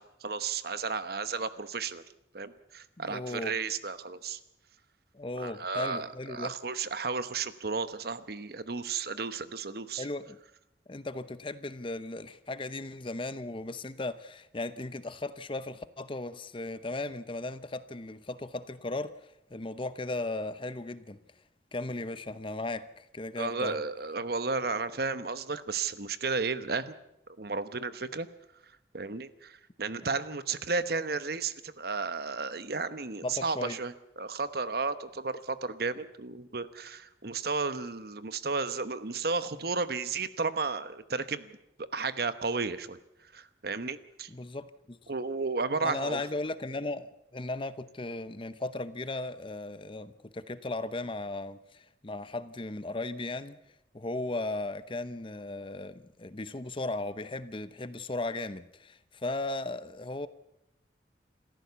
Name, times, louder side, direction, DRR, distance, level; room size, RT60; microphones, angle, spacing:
voice 1, 0.0-2.0 2.3-4.4 5.4-10.0 23.4-26.9 27.4-28.3 28.9-41.5 41.9-43.0 43.3-44.3 45.1-46.2, right 4 dB, 55° right, 1.0 m, -33 dB
voice 2, 3.0-3.6 5.1-6.5 10.0-10.4 10.9-21.2 21.7-23.8 33.2-33.8 44.3-45.0 45.8-53.6 53.9-60.3, left 2 dB, 30° left, 0.8 m, -36 dB
27.0 x 14.5 x 7.0 m
head